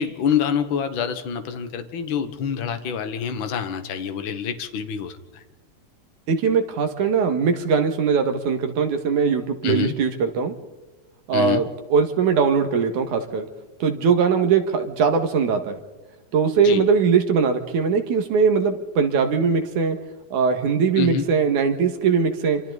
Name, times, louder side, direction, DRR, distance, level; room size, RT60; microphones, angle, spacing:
voice 1, 0.0-5.4 9.6-10.0 11.3-11.7 16.6-16.8 21.0-21.3, left 7 dB, 50° left, 8 dB, 1.8 m, -26 dB
voice 2, 6.3-10.5 11.3-13.5 13.8-15.8 16.3-20.0 20.3-22.6, right 6 dB, 85° right, 6 dB, 3.3 m, -21 dB
27.5 x 25.5 x 4.1 m, 1.2 s
omnidirectional pair, 3.4 m